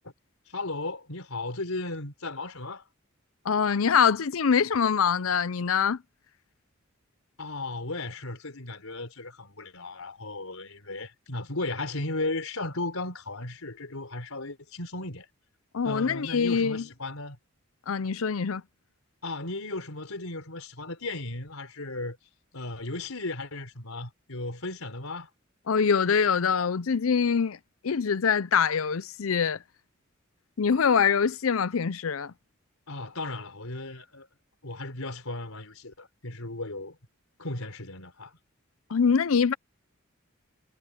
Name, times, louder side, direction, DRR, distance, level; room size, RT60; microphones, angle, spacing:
voice 1, 0.5-2.8 7.4-15.3 15.8-17.4 19.2-22.2 22.5-25.3 32.9-34.3 34.6-37.0 37.4-38.3, left 2 dB, 90° left, 4.1 m, -35 dB
voice 2, 3.4-6.0 15.7-16.8 17.9-18.6 25.7-27.6 27.8-29.6 30.6-32.3 38.9-39.5, left 6 dB, 75° left, 0.6 m, -24 dB
head